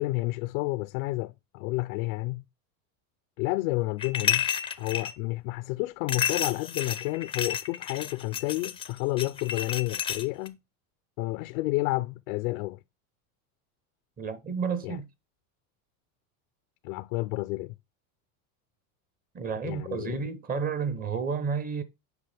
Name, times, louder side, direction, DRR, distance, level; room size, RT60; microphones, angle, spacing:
voice 1, 0.0-2.4 3.4-4.5 4.8-10.6 11.2-12.8 14.8-15.0 16.8-17.7 19.6-20.2, left 21 dB, 65° left, 0.6 m, -30 dB
sound 1, 4.0-5.1 6.1-10.5, left 9 dB, 10° left, 0.5 m, -31 dB
voice 2, 14.2-15.1 19.3-21.8, right 6 dB, 20° right, 0.8 m, -31 dB
8.1 x 5.6 x 3.4 m
supercardioid pair, 150°, 43 cm